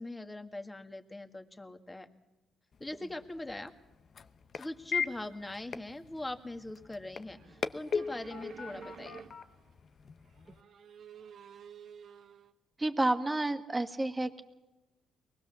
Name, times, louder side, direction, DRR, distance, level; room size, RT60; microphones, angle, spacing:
voice 1, 0.0-2.1 2.8-3.7 4.5-9.2, left 2 dB, 15° left, 6 dB, 1.9 m, -41 dB
sound 1, 2.7-10.6, left 6 dB, 50° left, 0.9 m, -40 dB
sound 2, 7.2-9.7 10.3-12.5, right 7 dB, 65° right, 1.5 m, -51 dB
voice 2, 12.8-14.4, right 2 dB, 15° right, 7 dB, 1.9 m, -30 dB
23.5 x 20.0 x 7.0 m, 1.0 s
cardioid pair, 90°, 0 cm